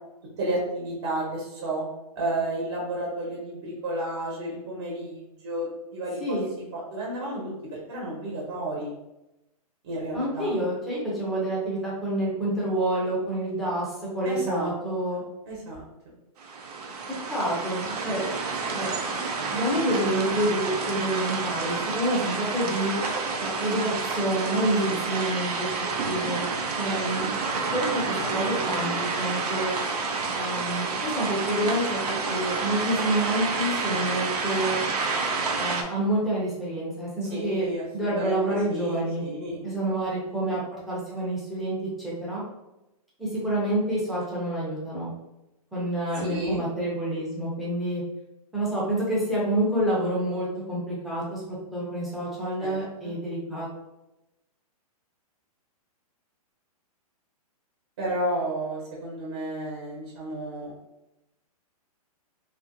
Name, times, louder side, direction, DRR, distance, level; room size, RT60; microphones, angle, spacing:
voice 1, 0.4-1.8 2.1-6.4 6.7-7.5 7.9-8.9 9.8-10.5 14.2-14.7 15.1-15.2 15.5-15.8 24.9-25.0 37.3-39.6 46.3-46.6 52.6-52.8 53.0-53.1 58.0-60.7, right 1 dB, 40° right, -4 dB, 0.8 m, -31 dB
voice 2, 10.1-15.2 17.3-18.3 18.7-18.9 19.5-23.0 23.4-27.3 27.7-29.7 30.3-32.0 32.3-34.8 35.5-37.7 37.9-39.2 39.6-42.4 43.2-45.1 45.7-48.0 48.5-51.4 51.7-53.7, right 1 dB, ahead, -7 dB, 0.5 m, -28 dB
sound 1, 16.4-35.8, right 4 dB, 90° right, 0.6 m, -29 dB
2.7 x 2.5 x 2.5 m, 0.93 s
hypercardioid pair, 160°, 19 cm